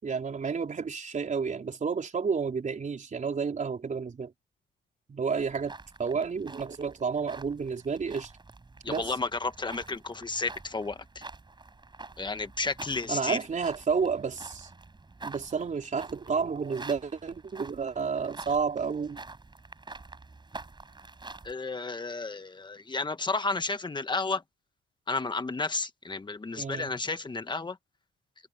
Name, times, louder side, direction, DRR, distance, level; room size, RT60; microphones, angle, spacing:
voice 1, 0.0-4.3 5.1-8.3 8.9-9.1 13.1-14.7 15.2-19.2 26.6-26.9, right 5 dB, 40° right, 4.7 m, -31 dB
sound 1, 5.4-21.5, right 3 dB, 20° right, 6.8 m, -47 dB
voice 2, 8.8-11.3 12.2-13.4 21.4-24.4 25.1-27.8, left 3 dB, 25° left, 1.5 m, -32 dB
cardioid pair, 90°, 20 cm